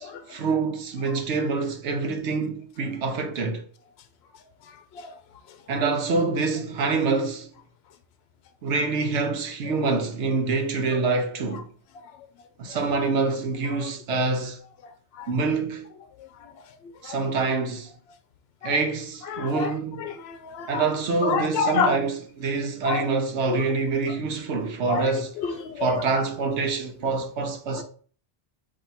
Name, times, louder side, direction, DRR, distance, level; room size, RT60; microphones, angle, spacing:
voice 1, 0.0-3.7 5.7-7.5 8.6-11.7 12.6-14.6 15.3-15.9 17.0-17.9 18.6-20.1 20.7-25.4 25.8-27.8, right 4 dB, 80° right, 1.1 m, -26 dB
voice 2, 19.3-19.7 20.0-20.8 21.2-22.0 22.8-23.0 23.5-23.6 24.9-25.1 25.6-25.9, left 5 dB, 70° left, 0.8 m, -27 dB
4.4 x 2.8 x 4.0 m
omnidirectional pair, 1.2 m